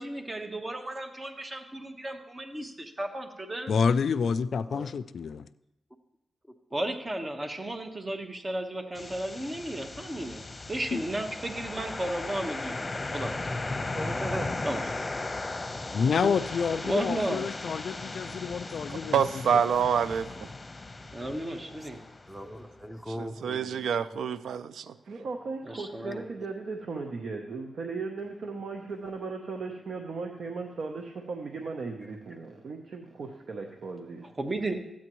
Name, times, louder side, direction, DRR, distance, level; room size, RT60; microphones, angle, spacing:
voice 1, 0.0-3.7 6.7-10.4 10.7-13.5 14.6-14.8 16.1-16.3 16.8-17.4 21.1-22.0 25.6-26.2 34.4-34.7, right 1 dB, 30° right, 1.2 m, -34 dB
voice 2, 3.7-5.5 10.9-11.0 15.9-19.6, left 6 dB, 75° left, 0.3 m, -28 dB
sound 1, 9.0-22.8, left 2 dB, 30° left, 0.9 m, -37 dB
voice 3, 13.9-14.5 22.3-23.8, equal, 5° right, 0.8 m, -38 dB
voice 4, 18.9-20.5 23.2-25.0, right 7 dB, 90° right, 0.3 m, -27 dB
voice 5, 25.1-34.3, right 4 dB, 70° right, 0.8 m, -37 dB
14.0 x 8.7 x 3.1 m
cardioid pair, 65°, 0 cm